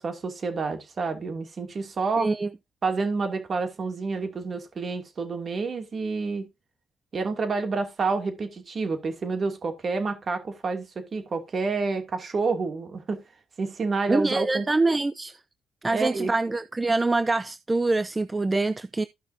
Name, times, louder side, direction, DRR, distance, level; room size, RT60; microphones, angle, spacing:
voice 1, 0.0-2.3 2.8-6.5 7.1-13.2 13.6-14.7 15.9-16.3, right 4 dB, 45° right, 2.6 m, -29 dB
voice 2, 2.2-2.5 14.1-15.4 15.8-19.0, right 3 dB, 20° right, 0.4 m, -25 dB
14.0 x 5.7 x 2.8 m
cardioid pair, 90°, 0 cm